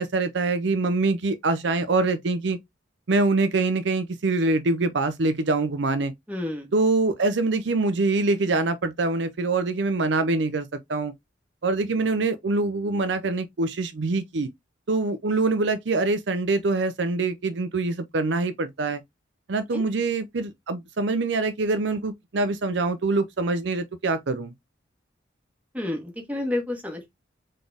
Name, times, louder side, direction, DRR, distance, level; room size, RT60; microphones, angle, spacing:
voice 1, 0.0-2.6 3.1-6.1 6.7-11.1 11.6-14.5 14.9-19.0 19.5-24.5, right 3 dB, 65° right, 0.6 m, -24 dB
voice 2, 6.3-6.7 19.7-19.8 25.7-27.1, left 1 dB, 10° right, 1.5 m, -30 dB
4.0 x 3.7 x 3.4 m
head